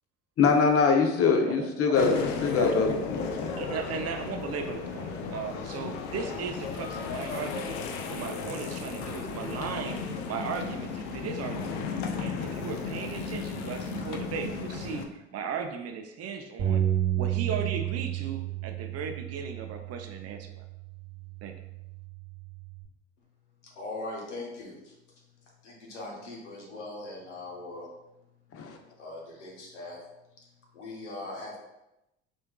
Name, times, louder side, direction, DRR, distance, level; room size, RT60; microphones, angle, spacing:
voice 1, 0.4-3.7 28.5-28.8, left 5 dB, 40° left, 0.8 m, -24 dB
sound 1, 1.9-15.0, left 5 dB, 70° left, 0.6 m, -34 dB
voice 2, 2.5-2.9 3.5-7.8 8.1-11.8 12.2-16.8 17.2-20.6 21.4-21.5, right 6 dB, 45° right, 0.6 m, -36 dB
Bass guitar, 16.6-22.8, right 11 dB, 70° right, 1.0 m, -32 dB
voice 3, 23.6-24.9 25.6-27.9 29.0-30.0 30.7-31.6, left 2 dB, 90° left, 1.0 m, -40 dB
5.4 x 3.4 x 2.3 m
hypercardioid pair, 65°, 34 cm